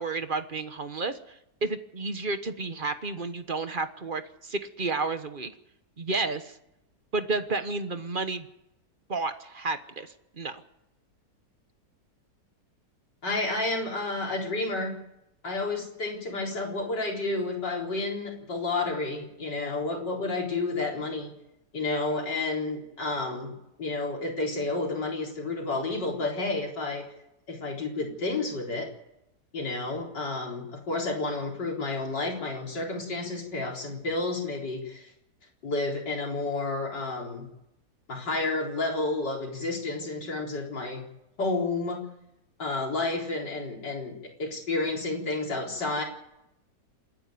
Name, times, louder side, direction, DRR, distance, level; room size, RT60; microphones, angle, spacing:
voice 1, 0.0-5.5 6.0-6.5 7.1-8.5 9.1-10.1 10.3-10.6, right 3 dB, 35° right, 10 dB, 1.2 m, -31 dB
voice 2, 13.2-15.0 15.4-21.3 21.7-27.1 27.5-28.9 29.5-35.1 35.6-37.5 38.1-41.0 41.4-42.0 42.6-46.0, left 3 dB, 85° left, 0 dB, 4.6 m, -30 dB
28.0 x 10.5 x 9.3 m, 0.84 s
omnidirectional pair, 1.8 m